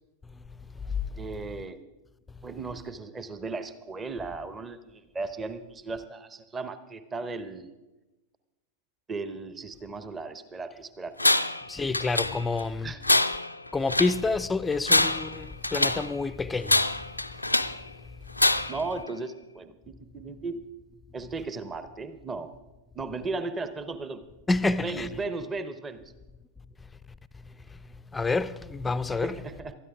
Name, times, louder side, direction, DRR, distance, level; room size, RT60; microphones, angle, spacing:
voice 1, 1.2-1.8 2.4-7.7 9.1-11.3 11.8-12.0 12.8-13.0 18.7-20.6 21.1-22.5 22.9-24.2 24.8-26.0 29.2-29.7, right 3 dB, 20° right, 0.9 m, -36 dB
Tools, 11.2-11.6 11.9-12.6 13.0-14.2 14.7-16.1 16.6-17.8 18.4-18.9, left 2 dB, 85° left, 0.4 m, -24 dB
voice 2, 11.7-12.9 13.7-16.8 24.5-25.1 28.1-29.4, left 3 dB, 10° left, 0.4 m, -28 dB
19.5 x 13.0 x 3.6 m
figure-of-eight pair, 90°, 0 cm